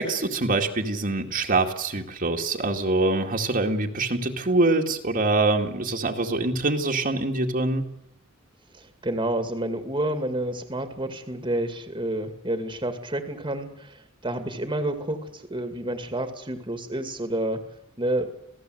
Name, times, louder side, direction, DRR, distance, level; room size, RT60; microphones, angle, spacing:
voice 1, 0.0-7.9, right 2 dB, 45° right, 1 dB, 2.2 m, -24 dB
voice 2, 8.7-17.6 18.0-18.3, right 1 dB, 25° right, 7 dB, 2.3 m, -29 dB
27.5 x 17.5 x 7.9 m, 0.84 s
head